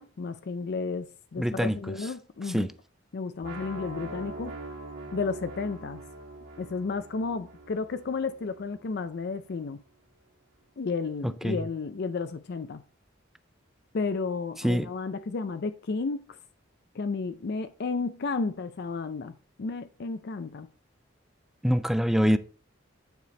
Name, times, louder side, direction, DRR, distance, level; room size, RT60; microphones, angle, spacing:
voice 1, 0.0-2.7 3.1-4.6 5.1-6.0 6.6-9.8 10.8-12.8 13.9-16.4 16.9-20.7, left 4 dB, 55° left, 0.5 m, -32 dB
voice 2, 1.4-1.8 2.5-2.7 11.2-11.6 14.6-14.9 21.6-22.4, equal, ahead, 0.4 m, -24 dB
sound 1, 3.4-9.3, right 2 dB, 60° right, 2.2 m, -43 dB
9.4 x 5.0 x 4.1 m
head